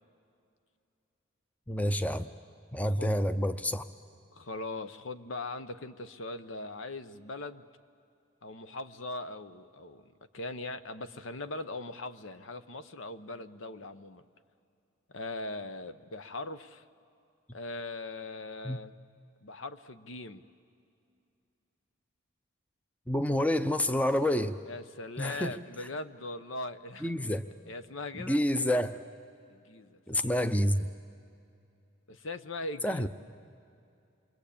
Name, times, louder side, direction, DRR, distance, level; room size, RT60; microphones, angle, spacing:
voice 1, 1.7-2.3 2.7-3.8 18.6-18.8 23.1-24.6 25.2-25.5 27.0-27.4 28.1-29.0 30.1-30.9 32.8-33.1, left 1 dB, 5° left, 11 dB, 0.6 m, -28 dB
voice 2, 4.3-7.7 8.4-14.2 15.1-16.8 17.5-18.9 19.4-20.4 24.7-27.1 27.7-28.4 29.5-30.3 32.1-33.1, left 2 dB, 75° left, 11 dB, 0.9 m, -40 dB
28.0 x 22.5 x 8.6 m, 2.5 s
head